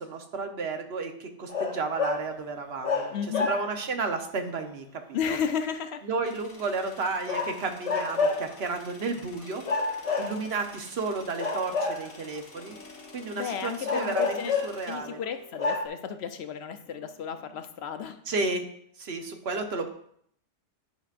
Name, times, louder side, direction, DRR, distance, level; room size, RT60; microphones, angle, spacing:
voice 1, 0.0-3.1 3.4-5.4 6.0-9.6 10.2-12.8 13.1-15.2 18.3-18.7 19.0-19.9, right 3 dB, 60° right, 5 dB, 1.1 m, -32 dB
sound 1, 1.5-2.3 2.8-3.9 7.3-8.5 9.6-10.7 11.4-12.4 13.8-14.9 15.3-15.4 15.6-15.9, left 4 dB, 35° left, 0.8 m, -29 dB
voice 2, 3.1-3.5 5.1-6.0 13.3-18.2, left 7 dB, 65° left, 8 dB, 0.9 m, -33 dB
sound 2, 6.2-15.0, left 3 dB, 80° left, 1.5 m, -51 dB
sound 3, 12.5-17.6, left 1 dB, 10° left, 1.1 m, -53 dB
10.5 x 5.7 x 2.5 m, 0.68 s
omnidirectional pair, 1.2 m